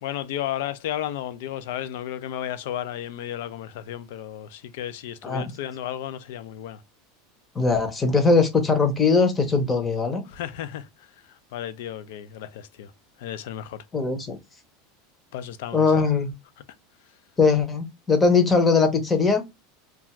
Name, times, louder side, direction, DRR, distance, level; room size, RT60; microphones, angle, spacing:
voice 1, 0.0-6.8 10.3-12.9 13.2-13.8 15.3-15.9, left 11 dB, 75° left, 0.3 m, -33 dB
voice 2, 7.5-10.2 13.9-14.4 15.7-16.3 17.4-19.4, left 4 dB, 20° left, 0.6 m, -20 dB
2.4 x 2.3 x 2.9 m
supercardioid pair, 130°, 0 cm